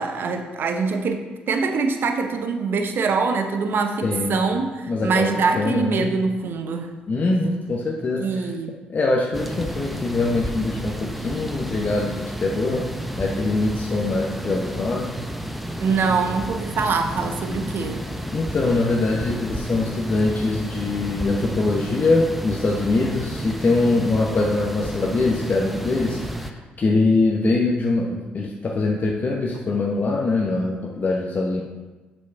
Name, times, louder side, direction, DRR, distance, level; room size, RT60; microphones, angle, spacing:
voice 1, 0.0-6.9 8.2-8.8 15.8-18.0, right 4 dB, 60° right, 6 dB, 0.8 m, -24 dB
voice 2, 4.0-4.4 4.9-6.1 7.1-8.5 8.9-12.9 13.2-15.1 18.3-31.6, left 3 dB, 40° left, -1 dB, 0.9 m, -23 dB
sound 1, 9.3-26.5, equal, ahead, 0.7 m, -32 dB
7.1 x 4.5 x 4.6 m, 1.2 s
hypercardioid pair, 50°, 4 cm